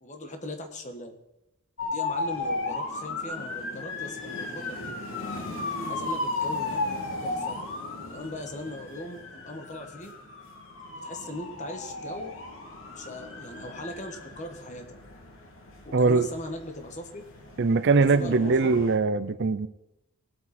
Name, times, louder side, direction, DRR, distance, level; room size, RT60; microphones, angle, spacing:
voice 1, 0.0-1.1 1.9-5.0 5.8-7.6 8.1-10.1 11.0-12.4 12.9-15.0 15.8-17.2 17.9-18.8, left 1 dB, 35° left, 1.5 m, -39 dB
sound 1, 1.8-19.0, left 2 dB, 60° left, 2.5 m, -35 dB
voice 2, 15.9-16.3 17.6-19.7, right 4 dB, 50° right, 0.5 m, -22 dB
19.0 x 8.5 x 4.3 m
head